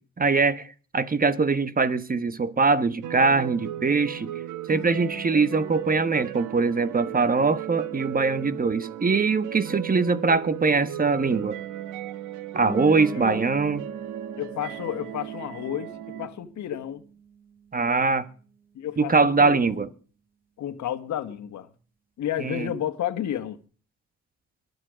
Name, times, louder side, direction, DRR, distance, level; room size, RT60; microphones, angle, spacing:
voice 1, 0.2-4.3 4.7-11.6 12.5-13.8 17.7-18.2 19.0-19.9 22.4-22.7, right 4 dB, 30° right, 1.3 m, -22 dB
sound 1, 3.0-16.3, right 12 dB, 85° right, 1.4 m, -36 dB
sound 2, 12.7-18.3, right 4 dB, 5° right, 2.0 m, -41 dB
voice 2, 13.1-13.4 14.4-17.0 18.7-19.9 20.6-21.7 22.2-23.6, left 10 dB, 70° left, 1.7 m, -31 dB
22.5 x 8.1 x 5.1 m
cardioid pair, 90°, 30 cm